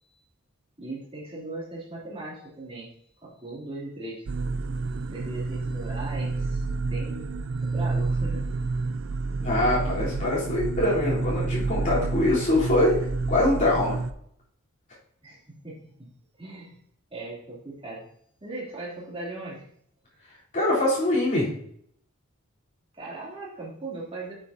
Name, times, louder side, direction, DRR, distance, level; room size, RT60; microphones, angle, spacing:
voice 1, 0.8-2.9 3.2-4.2 5.1-6.6 6.9-7.3 7.6-8.4 15.2-16.1 16.4-16.7 17.1-18.0 18.4-19.6 22.9-24.3, right 2 dB, 25° right, -6 dB, 3.2 m, -38 dB
sound 1, 4.3-14.1, right 3 dB, 60° right, 0.4 m, -29 dB
voice 2, 9.4-13.0 13.3-14.0 20.5-21.5, left 1 dB, 35° left, -9 dB, 3.7 m, -23 dB
9.1 x 7.6 x 2.8 m, 0.67 s
head